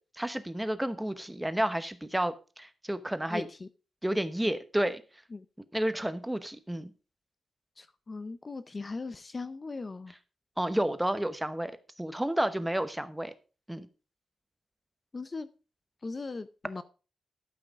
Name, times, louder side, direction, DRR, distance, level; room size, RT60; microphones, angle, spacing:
voice 1, 0.2-3.5 4.0-5.0 5.7-6.9 10.6-11.7 12.0-13.3 13.7-13.9, right 1 dB, 5° right, 0.9 m, -31 dB
voice 2, 3.3-3.7 5.3-5.5 7.8-10.1 15.1-15.5 16.0-16.8, left 3 dB, 30° left, 0.6 m, -39 dB
13.0 x 5.8 x 4.7 m
wide cardioid pair, 135°, 0 cm